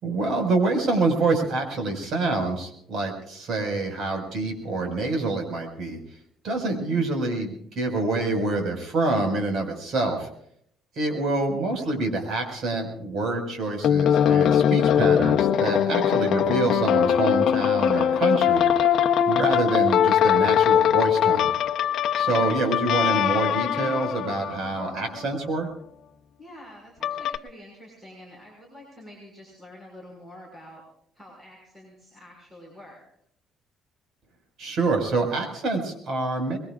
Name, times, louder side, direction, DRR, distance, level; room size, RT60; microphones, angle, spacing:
voice 1, 0.0-6.0 6.4-10.3 11.0-18.7 19.3-21.5 22.1-25.7 34.6-36.6, right 3 dB, 55° right, 4 dB, 5.4 m, -26 dB
sound 1, 13.8-25.2 27.0-27.4, left 9 dB, 60° left, 0.8 m, -21 dB
voice 2, 16.0-16.3 22.2-22.5 26.4-30.8 31.1-33.0, left 1 dB, 15° right, -2 dB, 6.0 m, -47 dB
24.5 x 22.0 x 2.5 m, 0.68 s
cardioid pair, 150°, 0 cm